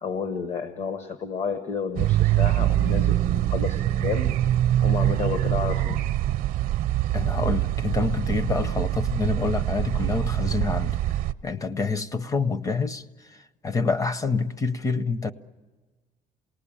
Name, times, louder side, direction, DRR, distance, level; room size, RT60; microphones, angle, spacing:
voice 1, 0.0-4.3 4.8-6.0, left 5 dB, 50° left, 1.1 m, -31 dB
sound 1, 2.0-11.3, right 13 dB, 75° right, 0.7 m, -24 dB
voice 2, 7.1-15.3, left 4 dB, 25° left, 0.7 m, -27 dB
27.5 x 19.0 x 8.7 m
cardioid pair, 150°, 15 cm